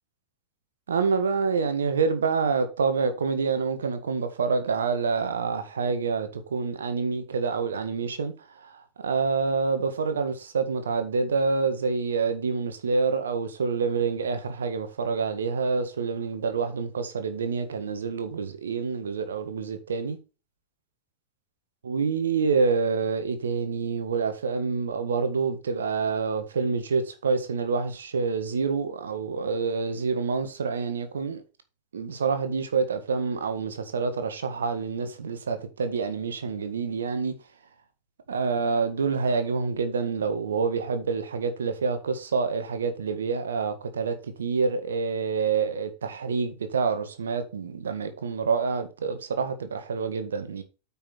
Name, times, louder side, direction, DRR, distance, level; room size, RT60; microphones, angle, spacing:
voice 1, 0.9-8.3 8.6-20.2 21.8-31.4 31.9-37.3 38.3-50.6, right 5 dB, 70° right, 1.6 m, -27 dB
9.0 x 5.7 x 4.3 m
figure-of-eight pair, 90°, 0 cm